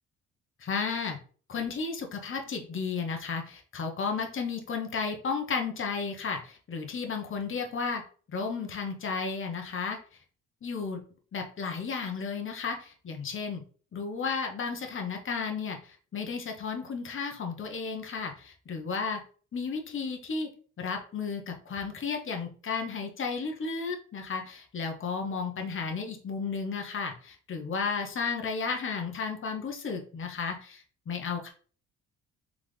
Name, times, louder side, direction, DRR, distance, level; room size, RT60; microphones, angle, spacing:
voice 1, 0.6-1.2 1.5-8.0 8.3-10.0 10.6-11.0 11.3-13.6 13.9-19.2 19.5-20.5 20.8-31.5, left 5 dB, 40° left, 3 dB, 1.1 m, -33 dB
3.7 x 3.6 x 3.2 m, 0.42 s
cardioid pair, 90°, 30 cm